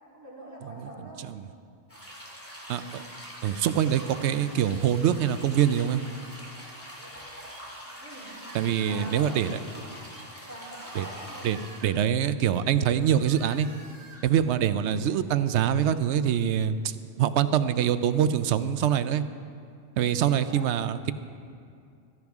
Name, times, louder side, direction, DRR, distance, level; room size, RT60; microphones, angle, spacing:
voice 1, 0.1-1.3 8.0-8.4 8.9-10.0 10.5-11.5 20.3-20.8, right 1 dB, 15° right, -6 dB, 3.3 m, -44 dB
sound 1, 1.9-11.9, equal, 10° left, 2.2 m, -44 dB
voice 2, 2.7-3.0 3.4-6.0 8.5-9.6 11.0-11.1 11.4-11.6 11.8-13.7 14.2-19.2 20.0-21.1, right 9 dB, 80° right, 12 dB, 0.9 m, -24 dB
sound 2, 4.0-17.9, right 2 dB, 60° right, 1.7 m, -53 dB
15.5 x 13.5 x 3.6 m, 2.4 s
omnidirectional pair, 1.2 m